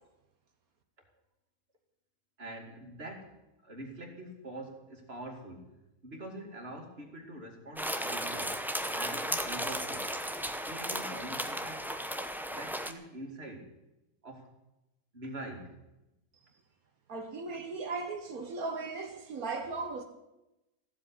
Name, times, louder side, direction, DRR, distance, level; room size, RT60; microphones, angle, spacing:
voice 1, 2.4-5.8 6.0-8.6 8.9-10.1 10.6-11.9 12.5-13.7 14.2-14.5 15.1-15.8, right 1 dB, 45° right, 2.8 m, -44 dB
sound 1, 7.8-12.9, equal, ahead, 0.6 m, -35 dB
voice 2, 17.1-20.0, right 3 dB, 80° right, 1.8 m, -37 dB
15.0 x 7.9 x 10.0 m
omnidirectional pair, 1.5 m